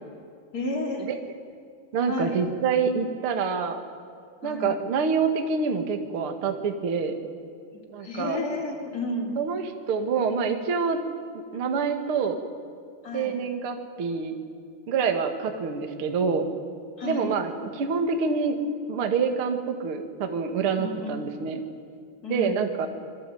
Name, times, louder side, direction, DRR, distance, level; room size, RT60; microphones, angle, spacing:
voice 1, 0.5-1.0 2.1-2.4 4.4-4.8 8.0-9.4 13.0-13.3 17.0-17.4 20.8-21.3 22.2-22.6, left 2 dB, 25° left, 2 dB, 3.3 m, -32 dB
voice 2, 1.9-3.8 4.4-7.2 7.9-8.4 9.4-11.0 11.5-12.4 13.1-14.3 14.9-16.5 17.0-18.6 18.9-21.6 22.3-22.9, right 5 dB, 45° right, 5 dB, 1.9 m, -26 dB
26.5 x 23.0 x 9.4 m, 2.4 s
omnidirectional pair, 5.0 m